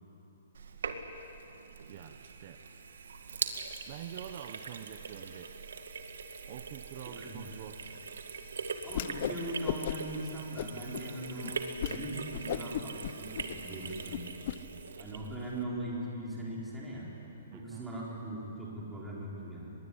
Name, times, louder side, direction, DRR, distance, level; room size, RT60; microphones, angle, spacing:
Sink (filling or washing), 0.5-15.6, right 5 dB, 85° right, 2.1 m, -42 dB
voice 1, 1.9-2.6 3.9-5.6 6.4-7.8 17.5-17.9, right 10 dB, 30° right, 8 dB, 0.8 m, -46 dB
voice 2, 7.0-7.4 8.8-14.2 15.0-17.1 17.5-19.7, right 1 dB, 5° right, -6 dB, 4.0 m, -40 dB
Whoosh swoosh swish, 8.9-9.4 9.6-10.2 10.6-11.0 11.4-11.5 11.8-12.0 12.3-14.6, left 11 dB, 40° left, 0.7 m, -35 dB
24.0 x 21.5 x 9.8 m, 3.0 s
hypercardioid pair, 175°, 0 cm